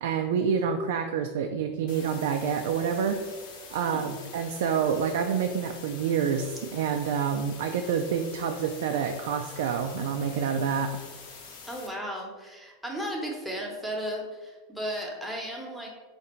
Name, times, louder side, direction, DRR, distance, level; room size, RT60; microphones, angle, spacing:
voice 1, 0.0-3.2 3.7-10.9, right 7 dB, 80° right, 5 dB, 0.3 m, -28 dB
sound 1, 1.9-11.9, left 4 dB, 65° left, 0.9 m, -46 dB
voice 2, 3.8-4.1 11.7-15.9, equal, ahead, -2 dB, 0.9 m, -35 dB
3.8 x 2.6 x 4.3 m, 1.3 s
supercardioid pair, 130°, 0 cm